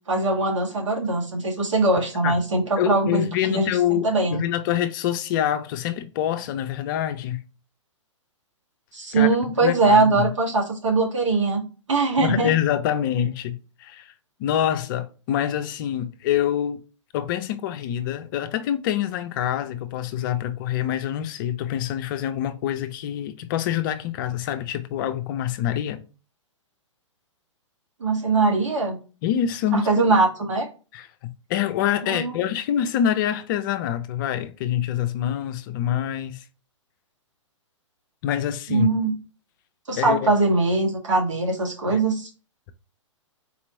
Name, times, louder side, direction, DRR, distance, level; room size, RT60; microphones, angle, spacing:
voice 1, 0.1-3.7 4.0-4.4 8.9-12.5 28.0-29.0 29.7-30.7 32.0-32.4 38.7-39.1 39.9-42.3, right 3 dB, 70° right, 1.8 m, -21 dB
voice 2, 2.8-7.4 9.1-9.3 9.6-10.3 12.2-14.1 14.4-16.8 17.1-26.0 29.2-29.9 30.9-36.4 38.2-38.9 40.0-40.2, left 10 dB, 40° left, 0.5 m, -26 dB
4.2 x 3.0 x 3.8 m
figure-of-eight pair, 115°, 16 cm